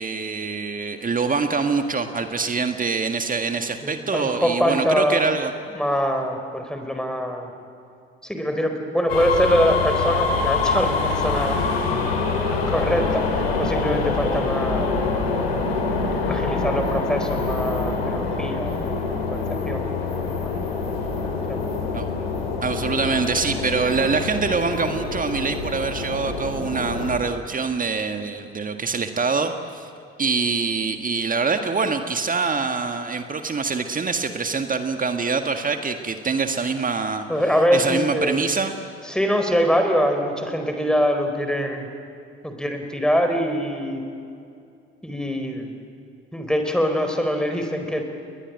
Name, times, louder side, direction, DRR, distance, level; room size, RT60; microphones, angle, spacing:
voice 1, 0.0-5.5 21.9-22.0 22.6-29.9 30.2-37.3 37.7-38.7, right 4 dB, 25° right, 7 dB, 1.8 m, -24 dB
voice 2, 3.8-5.2 5.7-7.5 8.2-11.6 11.9-12.1 12.5-15.1 16.3-19.9 20.3-20.5 21.5-21.7 37.3-38.4 39.0-41.9 42.4-44.0 45.0-45.7 46.3-48.0, equal, ahead, 5 dB, 4.3 m, -24 dB
sound 1, 9.1-27.2, left 4 dB, 75° left, 3.2 m, -25 dB
30.0 x 21.0 x 8.9 m, 2.5 s
figure-of-eight pair, 50°, 30 cm